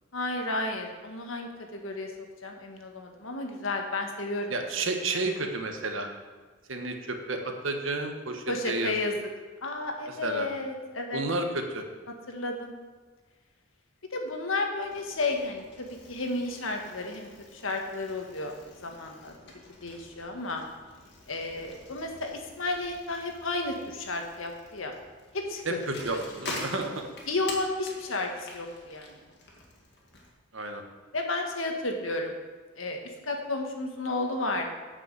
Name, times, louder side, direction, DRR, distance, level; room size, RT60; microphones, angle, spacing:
voice 1, 0.1-2.1 2.4-4.5 5.1-5.2 8.5-9.1 9.6-11.2 12.3-12.7 14.1-18.5 18.8-19.3 19.8-20.6 21.3-24.9 25.3-25.8 27.3-29.2 31.1-32.4 32.8-34.7, left 2 dB, 75° left, 3 dB, 1.6 m, -32 dB
voice 2, 4.5-6.1 6.7-8.9 10.2-10.5 11.1-11.8 25.6-27.1 30.5-30.8, right 2 dB, 70° right, 4 dB, 1.3 m, -31 dB
Bicycle, 14.8-30.3, left 2 dB, 55° left, 2.0 m, -46 dB
8.6 x 6.2 x 7.7 m, 1.4 s
head